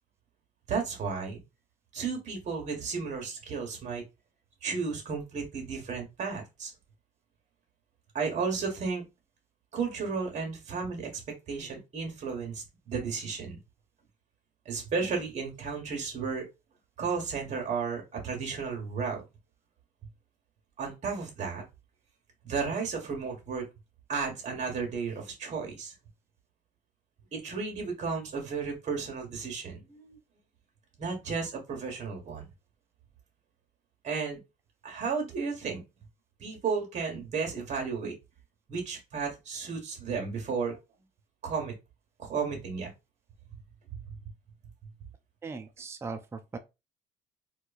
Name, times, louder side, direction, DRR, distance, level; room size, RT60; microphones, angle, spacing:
voice 1, 0.7-1.4 1.9-4.0 4.6-6.7 8.1-9.0 9.7-13.6 14.6-16.4 17.0-19.2 20.8-21.6 22.4-23.6 24.1-25.9 27.3-30.2 31.0-32.5 34.0-34.4 34.8-35.8 36.4-38.1 38.7-40.8 41.4-41.7 42.2-42.9 44.1-44.2, right 5 dB, 45° right, 1.3 m, -33 dB
voice 2, 45.4-46.6, right 4 dB, 15° right, 0.4 m, -39 dB
4.3 x 2.4 x 2.5 m
cardioid pair, 110°, 17 cm